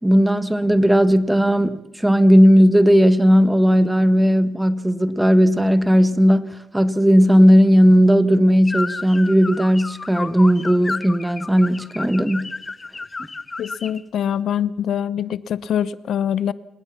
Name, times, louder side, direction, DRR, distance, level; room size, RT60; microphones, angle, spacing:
voice 1, 0.0-6.5 6.7-12.6, equal, 5° right, 1.6 m, -15 dB
sound 1, 8.7-14.0, left 3 dB, 25° left, 0.8 m, -32 dB
voice 2, 13.6-16.5, left 9 dB, 70° left, 0.7 m, -24 dB
27.5 x 18.0 x 5.9 m
cardioid pair, 90°, 0 cm